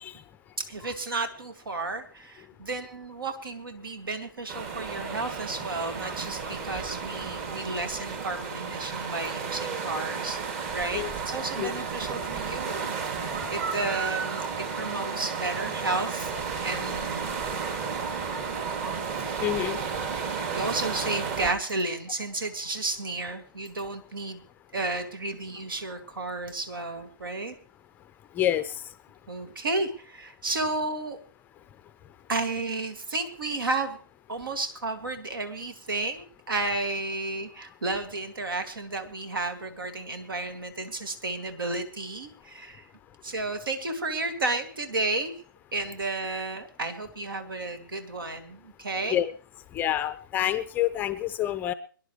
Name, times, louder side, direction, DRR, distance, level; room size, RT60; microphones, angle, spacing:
voice 1, 0.6-10.4 10.7-16.3 16.6-17.4 20.6-24.4 24.7-27.5 29.3-31.2 32.3-34.0 34.3-42.8 43.2-45.3 45.7-49.2, right 2 dB, 70° right, 8 dB, 2.2 m, -32 dB
sound 1, 4.5-21.5, right 5 dB, 40° right, 2.5 m, -32 dB
voice 2, 19.4-19.8 28.4-28.6 49.1-49.3 49.7-51.7, left 12 dB, 15° left, 12 dB, 0.5 m, -27 dB
24.0 x 11.0 x 3.1 m, 0.38 s
figure-of-eight pair, 130°, 12 cm